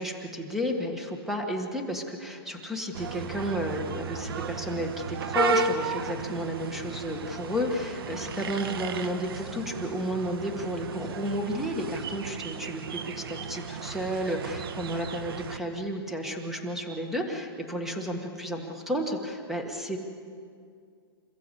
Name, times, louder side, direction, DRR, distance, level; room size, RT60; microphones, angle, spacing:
voice 1, 0.0-20.0, equal, ahead, 3 dB, 1.7 m, -32 dB
sound 1, 2.9-15.6, right 6 dB, 70° right, 1.4 m, -35 dB
28.0 x 14.5 x 8.4 m, 2.3 s
hypercardioid pair, 160°, 13 cm